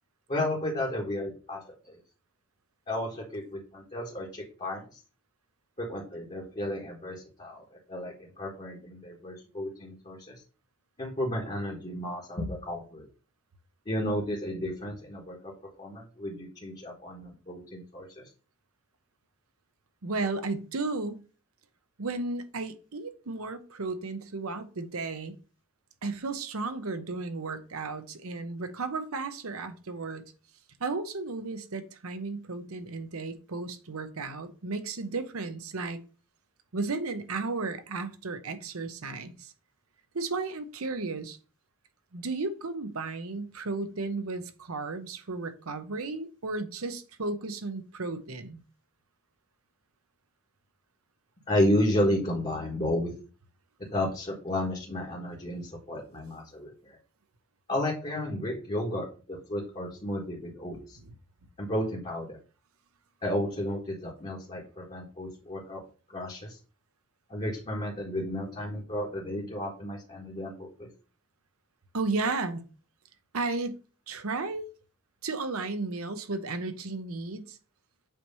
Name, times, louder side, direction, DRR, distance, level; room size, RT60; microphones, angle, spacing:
voice 1, 0.3-2.0 2.9-5.0 5.8-10.3 11.0-13.1 13.8-18.2 51.5-53.1 53.9-57.0 57.7-61.0 61.6-62.4 63.2-65.8 66.1-66.6 67.3-70.9, left 1 dB, 30° left, 1.5 m, -32 dB
voice 2, 20.0-21.2 22.0-25.3 26.0-30.2 30.8-36.0 36.7-39.5 40.1-41.4 42.1-48.6 71.9-72.6 73.3-73.8 74.1-74.7 75.2-77.6, right 3 dB, 80° right, 0.9 m, -34 dB
7.8 x 3.1 x 5.4 m
head